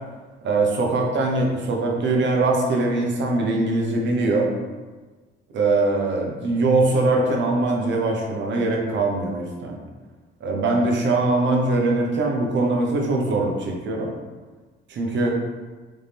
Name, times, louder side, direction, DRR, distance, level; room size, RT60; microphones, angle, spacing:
voice 1, 0.4-4.5 5.5-9.8 10.4-14.1 14.9-15.3, right 2 dB, 65° right, 0 dB, 1.0 m, -22 dB
4.2 x 3.6 x 3.5 m, 1.3 s
cardioid pair, 90°, 20 cm